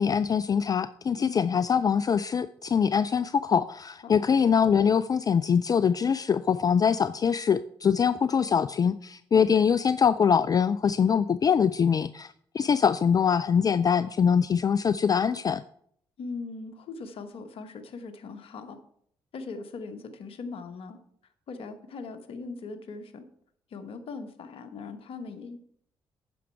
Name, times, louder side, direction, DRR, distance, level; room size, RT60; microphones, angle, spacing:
voice 1, 0.0-15.6, left 7 dB, 35° left, 15 dB, 0.3 m, -23 dB
voice 2, 16.2-18.8 19.3-21.0 21.5-23.2 23.7-25.6, left 4 dB, 60° left, 7 dB, 1.1 m, -40 dB
9.2 x 6.2 x 4.5 m, 0.65 s
hypercardioid pair, 45°, 11 cm